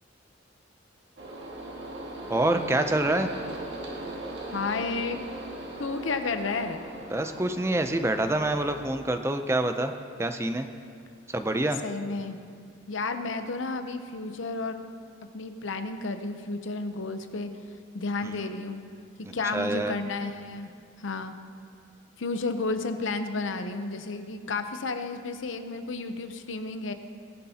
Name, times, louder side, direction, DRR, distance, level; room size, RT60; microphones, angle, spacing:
sound 1, 1.2-8.9, right 1 dB, 65° right, 1.9 m, -39 dB
voice 1, 2.3-3.3 7.1-9.9 10.2-10.7 11.3-11.8 18.2-18.3 19.5-20.0, right 1 dB, 15° right, 7 dB, 0.5 m, -26 dB
voice 2, 4.5-5.2 5.8-6.8 11.8-12.4 12.9-14.9 15.3-17.5 17.9-18.8 19.3-20.7 21.0-21.4 22.2-26.9, left 3 dB, 85° left, 8 dB, 0.7 m, -32 dB
18.5 x 11.5 x 2.8 m, 2.2 s
head